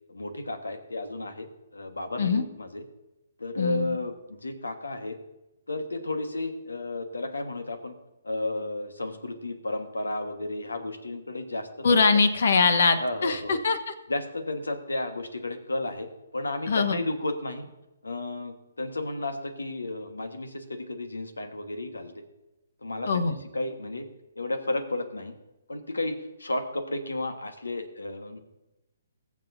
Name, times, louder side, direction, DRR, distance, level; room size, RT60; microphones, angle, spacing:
voice 1, 0.1-2.8 3.4-5.2 5.7-7.9 8.2-12.0 13.0-13.6 14.1-17.7 18.0-22.2 22.8-24.1 24.3-25.3 25.7-28.4, left 2 dB, 90° left, 8 dB, 1.4 m, -33 dB
voice 2, 3.6-4.0 11.8-13.8 16.7-17.0 23.1-23.4, left 4 dB, 65° left, 11 dB, 1.1 m, -22 dB
21.5 x 7.4 x 2.7 m, 1.0 s
figure-of-eight pair, 135°, 0 cm